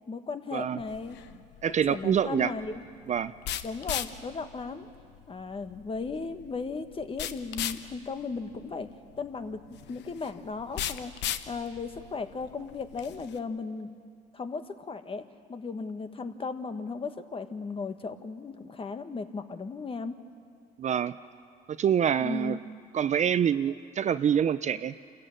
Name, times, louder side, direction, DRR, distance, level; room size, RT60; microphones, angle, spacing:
voice 1, 0.1-1.2 1.9-2.8 3.6-4.9 5.3-8.9 9.2-9.6 9.9-11.1 11.5-13.9 14.3-15.2 15.5-20.2 22.2-22.6, left 4 dB, 30° left, 8 dB, 1.5 m, -36 dB
sound 1, 0.8-13.4, left 11 dB, 70° left, 1.0 m, -39 dB
voice 2, 1.6-2.5 3.1-3.3 20.8-21.2 21.8-22.6 22.9-25.0, right 8 dB, 40° right, 13 dB, 0.5 m, -26 dB
28.0 x 14.5 x 9.1 m, 2.2 s
supercardioid pair, 90°, 19 cm